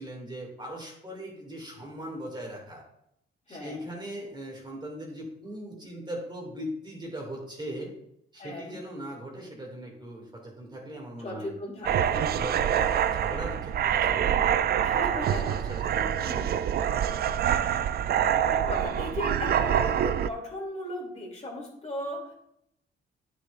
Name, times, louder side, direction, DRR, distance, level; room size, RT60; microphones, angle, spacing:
voice 1, 0.0-2.8 3.5-7.9 8.3-11.5 11.8-15.0 15.3-16.7, right 1 dB, 25° right, -1 dB, 2.2 m, -40 dB
voice 2, 3.5-3.8 8.4-8.8 11.2-12.9 14.8-15.5 16.3-16.5 18.5-22.3, left 1 dB, 35° left, -2 dB, 2.8 m, -37 dB
sound 1, 11.8-20.3, right 9 dB, 50° right, 0.4 m, -26 dB
9.4 x 6.7 x 2.5 m, 0.76 s
cardioid pair, 90°, 20 cm